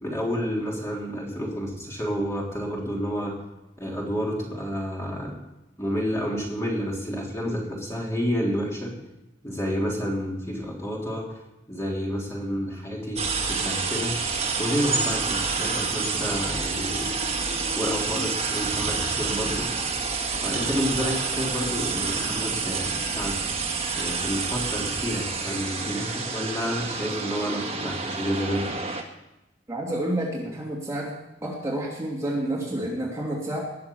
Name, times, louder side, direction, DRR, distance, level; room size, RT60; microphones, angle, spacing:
voice 1, 0.0-3.3 3.8-5.4 5.8-8.9 9.4-11.4 11.7-13.2 13.5-14.2 14.6-17.1 17.8-19.7 20.4-23.4 23.9-28.7, equal, 15° left, -3 dB, 3.5 m, -29 dB
sound 1, 13.2-29.0, right 4 dB, 35° right, 1.8 m, -28 dB
voice 2, 29.7-31.1 31.4-33.6, right 1 dB, 20° right, -4 dB, 2.7 m, -29 dB
20.0 x 6.9 x 7.0 m, 0.95 s
head